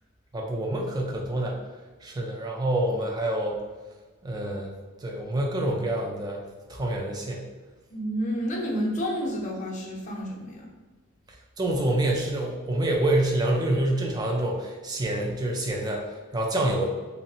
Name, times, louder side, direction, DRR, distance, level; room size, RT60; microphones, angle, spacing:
voice 1, 0.3-1.6 2.0-3.6 4.2-4.7 5.0-6.4 6.7-7.4 11.6-16.0 16.3-16.9, right 1 dB, 20° right, 0 dB, 0.3 m, -27 dB
voice 2, 7.9-10.7, equal, 35° left, -2 dB, 0.5 m, -30 dB
3.1 x 2.0 x 2.7 m, 1.3 s
head